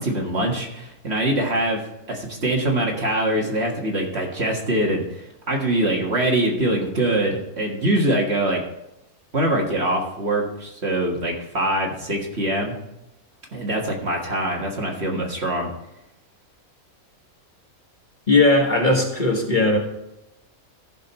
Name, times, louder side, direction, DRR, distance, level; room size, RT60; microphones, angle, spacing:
voice 1, 0.0-1.8 2.1-8.6 9.3-12.7 13.5-15.7, right 1 dB, 45° right, 0 dB, 2.0 m, -23 dB
voice 2, 18.3-19.8, left 2 dB, 35° left, 0 dB, 1.6 m, -18 dB
14.0 x 6.5 x 4.4 m, 0.88 s
omnidirectional pair, 1.5 m